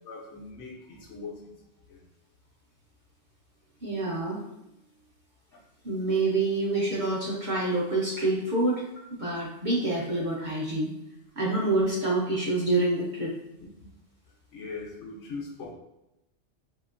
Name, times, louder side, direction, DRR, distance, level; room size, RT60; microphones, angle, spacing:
voice 1, 0.0-1.5 1.9-2.0 5.5-5.6 13.6-13.9 14.5-15.7, left 4 dB, 75° left, -2 dB, 1.1 m, -41 dB
voice 2, 3.8-4.4 5.8-8.8 9.2-10.9 11.4-13.3, right 2 dB, 45° right, -5 dB, 0.8 m, -27 dB
2.9 x 2.8 x 2.4 m, 0.90 s
omnidirectional pair, 1.3 m